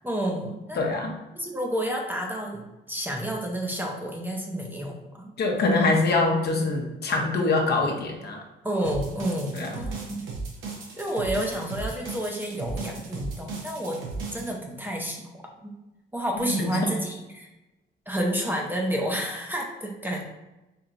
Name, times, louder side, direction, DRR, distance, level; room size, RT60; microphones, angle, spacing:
voice 1, 0.0-0.8 1.4-5.3 8.6-10.2 11.0-14.0 14.3-15.8 16.1-17.5 18.1-20.3, equal, 10° right, 0 dB, 0.6 m, -30 dB
voice 2, 0.8-1.1 5.4-8.4 9.5-9.9 16.6-16.9, left 3 dB, 55° left, 0 dB, 0.8 m, -24 dB
sound 1, 8.8-14.5, right 4 dB, 85° right, 0.9 m, -35 dB
4.5 x 2.8 x 2.5 m, 1.0 s
cardioid pair, 90°, 20 cm